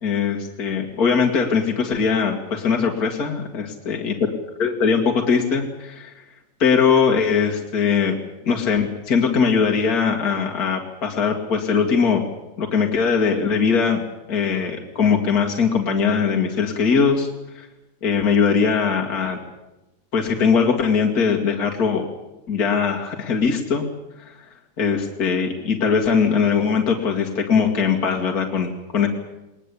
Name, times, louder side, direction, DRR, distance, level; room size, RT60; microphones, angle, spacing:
voice 1, 0.0-4.1 4.6-6.2 6.6-8.2 8.5-12.2 12.6-14.0 14.3-17.3 17.5-17.7 18.0-19.4 20.1-22.1 22.5-23.9 24.2-24.4 24.8-29.1, left 6 dB, 55° left, 2 dB, 2.4 m, -20 dB
21.5 x 19.5 x 8.4 m, 1.0 s
omnidirectional pair, 1.9 m